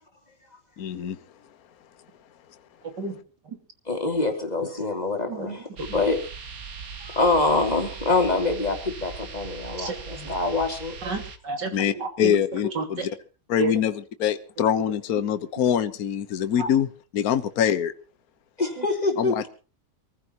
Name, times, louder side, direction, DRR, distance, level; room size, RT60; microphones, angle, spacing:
voice 1, 0.8-1.2 11.7-13.2 13.5-17.9 19.2-19.5, left 9 dB, 60° left, 11 dB, 1.5 m, -24 dB
voice 2, 2.8-3.2 3.5-3.6 5.3-5.5 5.8-5.9 9.8-10.0 10.2-10.4 11.0-12.4 12.8-13.1 13.6-13.7 15.6-15.7 16.6-16.7 18.8-18.9, right 3 dB, 80° right, 5 dB, 3.5 m, -31 dB
voice 3, 3.9-6.2 7.0-10.9 18.6-19.3, left 3 dB, 25° left, 4 dB, 3.0 m, -25 dB
sound 1, 5.8-11.4, right 5 dB, 55° right, 1.8 m, -39 dB
25.5 x 15.0 x 3.0 m, 0.35 s
omnidirectional pair, 1.8 m